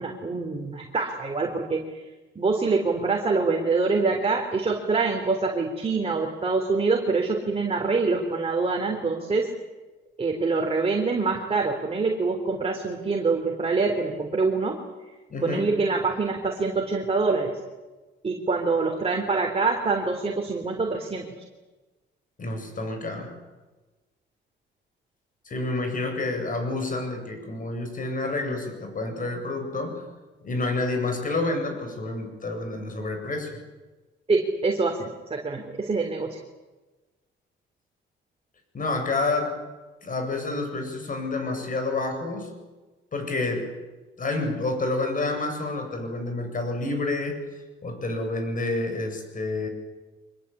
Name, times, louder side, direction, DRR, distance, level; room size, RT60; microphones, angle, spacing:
voice 1, 0.0-1.8 2.4-9.5 10.2-14.8 15.4-17.6 18.2-21.3 34.3-36.4, right 4 dB, 30° right, 1 dB, 3.8 m, -25 dB
voice 2, 15.3-15.7 22.4-23.4 25.5-30.0 30.4-33.5 38.7-39.5 40.0-42.5 43.1-43.7 44.2-47.4 47.8-49.7, left 2 dB, 45° left, 6 dB, 7.8 m, -29 dB
25.0 x 21.5 x 8.7 m, 1.2 s
cardioid pair, 90°, 20 cm